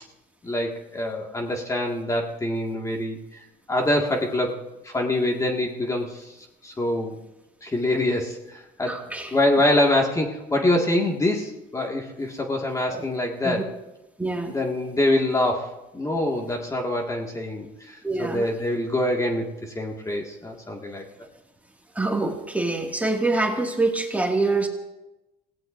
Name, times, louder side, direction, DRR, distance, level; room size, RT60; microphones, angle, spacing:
voice 1, 0.4-3.2 3.7-6.3 6.6-7.2 7.6-9.0 9.3-13.7 14.5-21.1, left 1 dB, 20° left, 0 dB, 1.9 m, -25 dB
voice 2, 8.9-9.3 12.9-13.1 13.4-13.6 14.2-14.5 18.0-18.5 21.9-24.7, right 2 dB, 10° right, 1 dB, 2.1 m, -25 dB
27.0 x 17.0 x 2.6 m, 0.99 s
cardioid pair, 110°, 17 cm